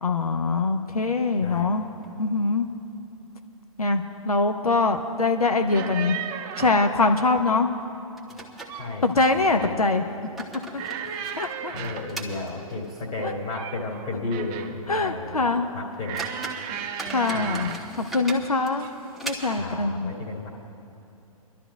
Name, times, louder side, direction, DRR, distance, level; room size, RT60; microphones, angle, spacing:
voice 1, 0.0-1.9 2.2-2.7 3.8-6.2 6.6-7.7 9.0-10.0 10.7-10.8 11.3-11.7 13.2-13.3 14.9-15.7 17.1-18.9 19.2-20.1, left 3 dB, 85° left, 6 dB, 0.8 m, -23 dB
sound 1, 1.4-2.4 2.7-2.8 3.2-3.3 3.9-4.4 4.7-4.8 5.4-5.6 5.9-6.1 7.4-7.5 8.2-9.4 10.0-13.2 13.6-13.7 14.2-14.3 14.8-14.9 15.5-15.6 15.9-19.8, right 2 dB, ahead, 1.1 m, -40 dB
sound 2, 5.7-6.9 8.4-9.0 9.3-9.8 10.8-12.2 13.2-14.8 16.0-17.9 18.8-19.1 19.4-19.6, right 8 dB, 30° right, 0.7 m, -35 dB
voice 2, 8.8-9.8 11.7-16.2 17.3-17.7 19.6-20.5, left 3 dB, 30° left, 0 dB, 2.3 m, -33 dB
29.5 x 12.0 x 2.3 m, 2.9 s
figure-of-eight pair, 110°, 18 cm